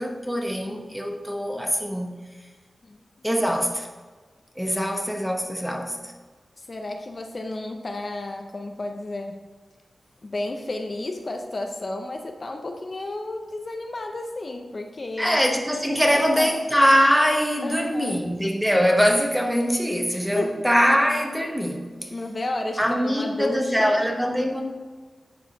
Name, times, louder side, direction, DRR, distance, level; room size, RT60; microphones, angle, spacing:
voice 1, 0.0-2.1 3.2-3.9 4.6-6.1 15.2-22.1 22.8-24.6, equal, 5° right, 2 dB, 1.1 m, -22 dB
voice 2, 2.8-3.3 5.6-5.7 6.6-9.4 10.2-15.4 16.0-16.5 17.6-18.2 20.1-20.6 22.1-24.0, left 2 dB, 45° left, 4 dB, 0.7 m, -32 dB
10.0 x 4.7 x 4.0 m, 1.4 s
wide cardioid pair, 75°, 0 cm